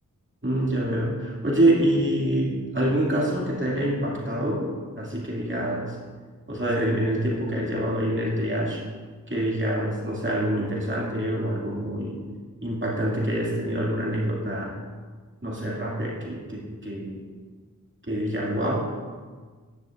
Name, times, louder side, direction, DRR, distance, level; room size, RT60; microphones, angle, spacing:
voice 1, 0.4-4.7 5.0-5.9 6.5-8.8 9.3-12.2 12.6-14.7 15.4-17.2 18.1-18.9, right 1 dB, 35° right, -4 dB, 2.3 m, -26 dB
10.5 x 10.5 x 2.5 m, 1.5 s
wide cardioid pair, 45°, 33 cm